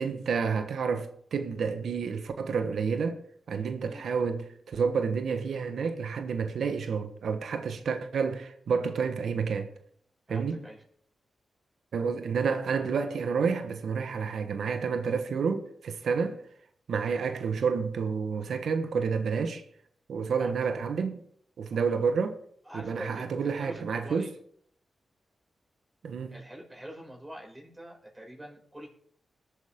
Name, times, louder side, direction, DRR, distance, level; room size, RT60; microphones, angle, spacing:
voice 1, 0.0-3.2 3.5-9.7 10.3-10.6 11.9-16.4 16.9-19.6 20.1-21.2 21.6-22.4 22.7-24.3 26.0-26.4, right 5 dB, 80° right, 1.3 m, -29 dB
voice 2, 10.3-10.8 16.2-16.4 20.4-20.5 21.7-21.8 22.6-24.3 26.3-28.9, right 1 dB, 15° right, 6.1 m, -45 dB
20.5 x 8.4 x 3.7 m
cardioid pair, 60°, 0 cm